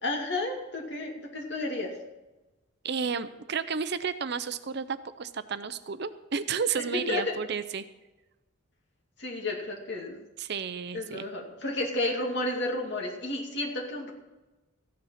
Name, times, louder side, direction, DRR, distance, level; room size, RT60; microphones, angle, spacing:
voice 1, 0.0-1.9 7.1-7.4 9.2-10.2 10.9-14.1, left 2 dB, 55° left, 0 dB, 2.5 m, -32 dB
voice 2, 2.8-7.8 10.4-11.3, right 6 dB, 50° right, 12 dB, 0.6 m, -32 dB
14.5 x 9.6 x 5.8 m, 1.1 s
head